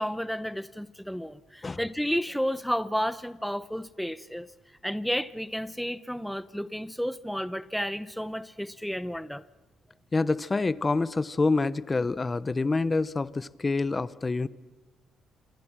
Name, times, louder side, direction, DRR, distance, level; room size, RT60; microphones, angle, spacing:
voice 1, 0.0-4.5 4.8-9.4, equal, ahead, 0.8 m, -32 dB
voice 2, 10.1-14.5, left 3 dB, 25° left, 1.0 m, -27 dB
27.5 x 27.0 x 6.2 m
cardioid pair, 90°, 0 cm